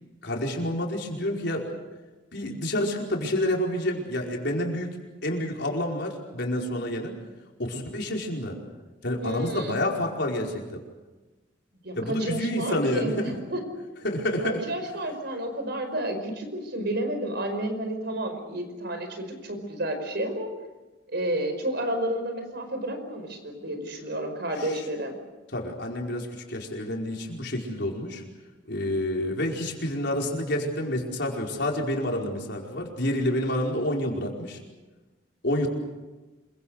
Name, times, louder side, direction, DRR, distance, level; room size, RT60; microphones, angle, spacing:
voice 1, 0.2-1.7 2.3-5.0 5.2-7.1 7.6-8.6 9.0-10.8 11.9-13.3 14.0-14.6 24.6-24.8 25.5-28.2 28.7-34.6 35.4-35.7, left 1 dB, 65° left, 0 dB, 5.0 m, -28 dB
voice 2, 9.2-9.8 11.8-13.6 14.4-20.5 21.1-25.2, right 1 dB, 65° right, 7 dB, 5.1 m, -31 dB
27.5 x 24.0 x 6.6 m, 1.2 s
head